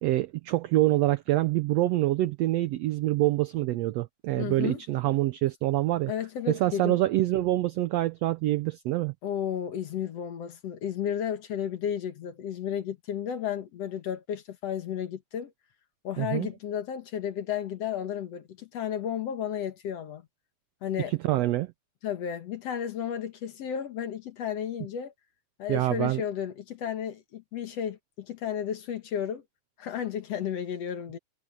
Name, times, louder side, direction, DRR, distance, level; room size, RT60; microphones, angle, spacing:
voice 1, 0.0-6.1 6.5-9.1 16.2-16.5 21.1-21.7 25.7-26.2, right 16 dB, 80° right, 1.5 m, -26 dB
voice 2, 4.4-4.8 6.1-7.0 9.2-15.5 16.0-20.2 20.8-21.1 22.0-25.1 25.6-29.4 29.8-31.2, left 9 dB, 60° left, 2.2 m, -33 dB
omnidirectional pair, 3.6 m